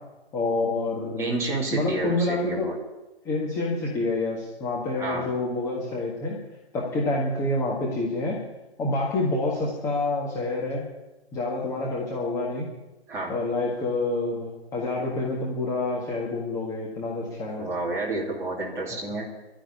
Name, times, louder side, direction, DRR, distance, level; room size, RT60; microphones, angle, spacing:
voice 1, 0.3-1.3 1.7-2.7 3.3-6.4 6.7-8.4 8.8-10.8 11.3-12.7 13.3-17.7, left 2 dB, 10° left, -4 dB, 1.6 m, -27 dB
voice 2, 1.2-2.8 4.9-5.3 13.1-13.4 17.6-19.3, right 2 dB, 10° right, -4 dB, 2.6 m, -30 dB
13.0 x 10.0 x 9.9 m, 1.1 s
hypercardioid pair, 160°, 33 cm